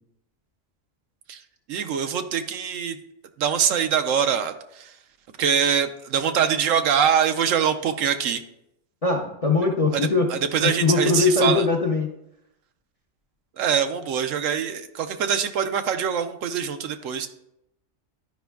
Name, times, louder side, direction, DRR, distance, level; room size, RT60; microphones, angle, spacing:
voice 1, 1.7-3.0 3.4-5.0 5.4-8.4 9.9-11.7 13.6-17.3, right 7 dB, 75° right, 8 dB, 1.0 m, -24 dB
voice 2, 9.0-10.3 10.6-12.1, left 4 dB, 40° left, 1 dB, 0.5 m, -21 dB
11.5 x 5.1 x 2.3 m, 0.81 s
omnidirectional pair, 1.4 m